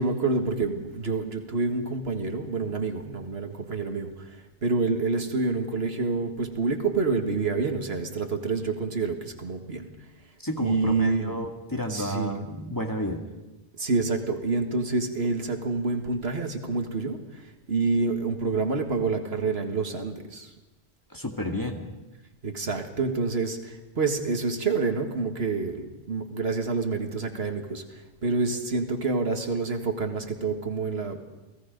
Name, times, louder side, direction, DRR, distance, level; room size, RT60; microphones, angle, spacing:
voice 1, 0.0-4.4 4.6-9.9 10.6-11.4 11.9-12.5 13.7-20.5 22.4-31.2, right 3 dB, 70° right, 5 dB, 2.0 m, -28 dB
voice 2, 10.4-13.2 21.1-21.8, left 1 dB, 20° left, 2 dB, 1.9 m, -31 dB
28.5 x 18.5 x 5.2 m, 1.1 s
omnidirectional pair, 1.1 m